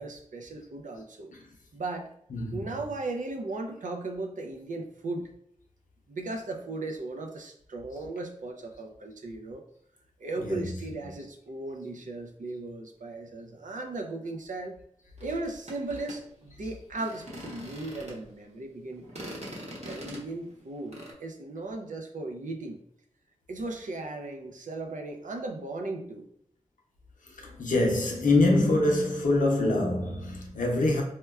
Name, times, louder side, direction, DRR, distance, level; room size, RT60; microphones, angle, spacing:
voice 1, 0.0-1.3 1.7-2.1 2.5-5.3 6.1-9.6 10.2-14.8 15.2-19.1 19.9-22.8 23.5-26.3, right 2 dB, 80° right, 0.4 m, -37 dB
voice 2, 10.4-10.7 27.4-31.0, left 2 dB, 85° left, 0.6 m, -24 dB
sound 1, 15.2-18.3 18.9-21.1, equal, 60° right, 0.9 m, -43 dB
4.2 x 2.2 x 2.3 m
cardioid pair, 45°, 13 cm